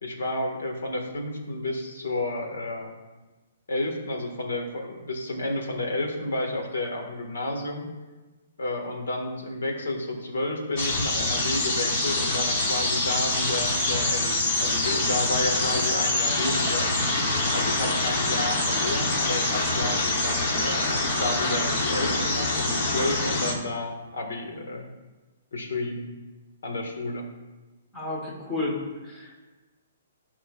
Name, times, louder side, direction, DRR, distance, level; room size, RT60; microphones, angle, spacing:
voice 1, 0.0-2.9 3.7-7.8 8.6-16.9 17.5-20.9 21.2-24.9 25.5-26.1 26.6-27.3, left 2 dB, 80° left, 2 dB, 1.7 m, -31 dB
sound 1, 10.8-23.5, left 2 dB, 30° left, 1.0 m, -25 dB
voice 2, 27.9-29.3, left 2 dB, 10° left, -4 dB, 1.2 m, -32 dB
13.0 x 5.6 x 2.4 m, 1.2 s
hypercardioid pair, 180°, 0 cm